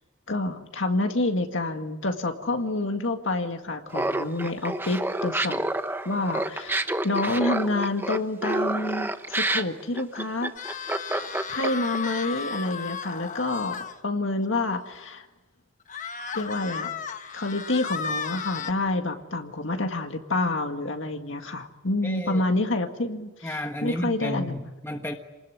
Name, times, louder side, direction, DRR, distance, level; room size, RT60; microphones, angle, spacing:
voice 1, 0.3-5.6 6.1-10.5 11.2-15.3 16.3-16.9 17.3-23.5 23.8-24.6, left 2 dB, 60° left, 5 dB, 1.9 m, -28 dB
Laughter, 3.9-12.0, right 1 dB, 10° right, 0.9 m, -28 dB
sound 1, 10.6-14.0 14.4-14.5 14.9-15.0 15.9-18.7, left 5 dB, 35° left, 1.1 m, -34 dB
voice 2, 22.0-22.4 23.4-25.1, left 1 dB, 10° left, 3 dB, 1.4 m, -32 dB
29.0 x 20.0 x 9.5 m, 1.2 s
head